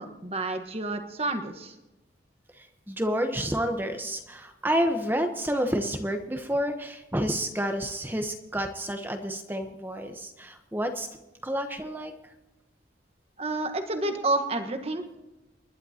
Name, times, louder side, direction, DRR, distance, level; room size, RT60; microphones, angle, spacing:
voice 1, 0.0-1.7 13.4-15.2, right 2 dB, 30° right, 7 dB, 1.3 m, -30 dB
voice 2, 2.5-11.1 11.4-12.1, equal, 10° right, 5 dB, 1.0 m, -29 dB
29.0 x 11.5 x 2.9 m, 1.0 s
head